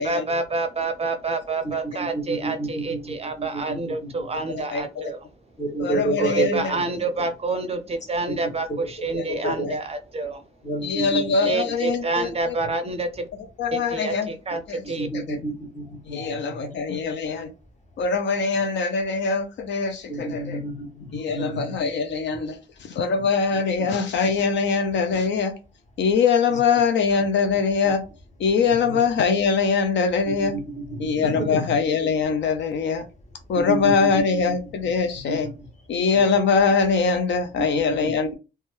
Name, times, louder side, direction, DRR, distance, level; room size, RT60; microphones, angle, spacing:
voice 1, 0.0-5.2 6.2-10.4 11.5-13.3 13.7-15.1, right 3 dB, 30° right, 9 dB, 0.5 m, -28 dB
voice 2, 1.8-4.4 5.6-7.0 9.0-9.7 10.6-11.2 11.6-11.7 15.0-17.0 20.1-21.8 26.5-26.6 28.8-29.0 30.4-31.8 33.7-34.5 35.2-35.5 36.1-36.2 37.6-38.1, right 2 dB, 35° left, 2 dB, 1.1 m, -30 dB
voice 3, 4.5-5.1 5.8-6.7 9.2-9.8 10.8-12.6 13.6-14.3 14.7-14.8 15.1-15.4 16.1-17.5 18.0-20.6 21.1-25.6 26.0-28.0 28.4-30.5 31.0-33.1 33.5-35.5 35.9-38.3, left 5 dB, 65° left, 8 dB, 0.5 m, -23 dB
2.6 x 2.3 x 3.1 m, 0.30 s
cardioid pair, 90°, 20 cm